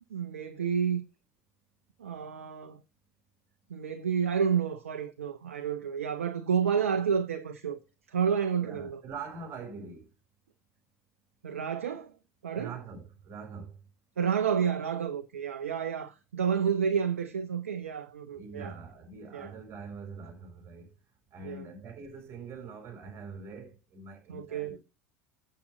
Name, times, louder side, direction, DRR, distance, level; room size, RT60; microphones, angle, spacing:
voice 1, 0.1-1.0 2.0-2.8 3.7-7.8 8.1-9.0 11.4-12.1 12.4-12.7 14.2-18.7 19.3-19.5 21.4-21.7 24.3-24.8, right 7 dB, 80° right, 0.8 m, -30 dB
voice 2, 8.6-10.1 12.5-13.8 18.3-20.9 21.3-24.8, right 4 dB, 35° right, 4.8 m, -43 dB
8.6 x 7.7 x 3.9 m
hypercardioid pair, 80°, 7 cm